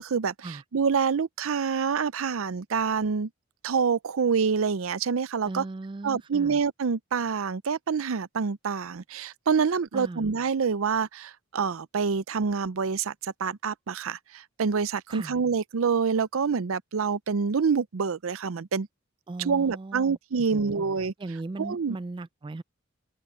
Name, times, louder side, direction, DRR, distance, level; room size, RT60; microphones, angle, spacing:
voice 1, 0.0-3.3 3.6-5.6 6.0-18.9 19.4-21.1 21.6-22.0, right 5 dB, 80° right, 0.5 m, -27 dB
voice 2, 5.5-6.6 9.9-10.3 15.1-15.4 19.3-20.2 20.5-20.8 21.2-22.6, right 2 dB, 25° right, 0.3 m, -38 dB
open air
head